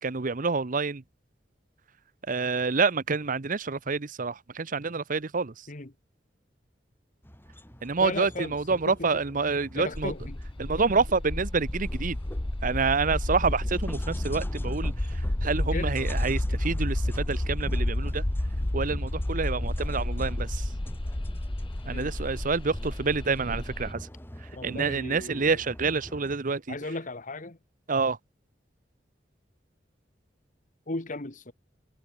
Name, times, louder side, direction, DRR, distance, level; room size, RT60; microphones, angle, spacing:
voice 1, 0.0-1.0 2.3-5.5 7.8-10.1 10.6-12.2 12.6-14.9 15.4-18.2 18.7-20.7 21.9-24.1 24.6-26.8 27.9-28.2, right 4 dB, 50° right, 0.8 m, -27 dB
sound 1, 7.2-26.4, equal, 15° left, 5.0 m, -46 dB
voice 2, 8.0-9.1 9.7-10.4 15.7-16.1 16.5-16.6 21.9-22.1 24.5-25.6 26.7-27.6 30.9-31.5, left 2 dB, 45° left, 1.7 m, -36 dB
sound 2, 9.9-23.9, left 1 dB, 30° left, 1.0 m, -30 dB
head